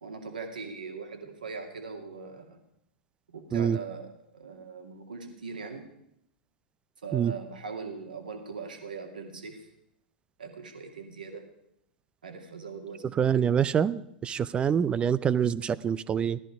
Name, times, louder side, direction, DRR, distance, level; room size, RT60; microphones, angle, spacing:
voice 1, 0.0-2.6 3.3-5.9 7.0-9.7 10.4-11.5 12.2-13.5, right 5 dB, 70° right, 4 dB, 2.5 m, -40 dB
voice 2, 13.2-16.4, right 8 dB, 20° right, 18 dB, 0.6 m, -26 dB
17.5 x 13.5 x 4.9 m, 0.79 s
figure-of-eight pair, 95°, 5 cm